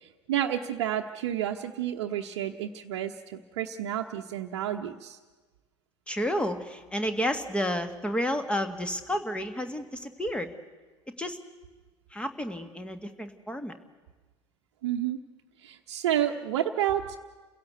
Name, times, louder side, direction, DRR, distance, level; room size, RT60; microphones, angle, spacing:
voice 1, 0.0-5.2 14.8-15.2 15.6-17.2, right 11 dB, 60° right, 1 dB, 1.1 m, -30 dB
voice 2, 6.1-10.5 11.2-11.4 12.1-13.7, equal, 5° left, 9 dB, 1.9 m, -31 dB
29.0 x 16.5 x 8.1 m, 1.3 s
figure-of-eight pair, 75°, 15 cm